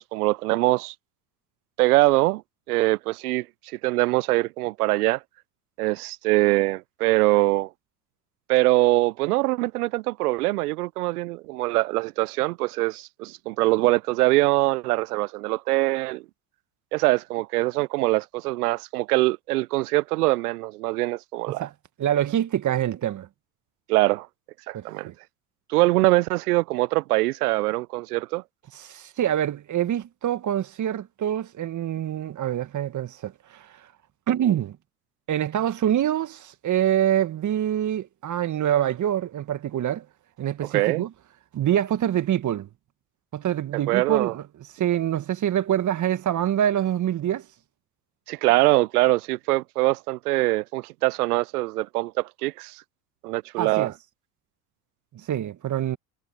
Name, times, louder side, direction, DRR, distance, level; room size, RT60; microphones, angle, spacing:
voice 1, 0.1-0.9 1.8-2.4 2.7-3.5 3.8-5.2 5.8-7.7 8.5-16.2 16.9-21.7 23.9-24.3 24.7-25.1 25.7-28.4 40.7-41.1 43.9-44.3 48.3-52.8 53.2-53.9, right 20 dB, 75° right, 0.8 m, -23 dB
voice 2, 22.0-23.3 24.7-25.1 28.7-33.8 34.3-34.8 35.3-40.1 40.4-41.1 41.5-42.7 43.3-44.4 44.7-47.5 53.6-53.9 55.1-56.0, right 11 dB, 40° right, 1.9 m, -25 dB
hypercardioid pair, 75°, 46 cm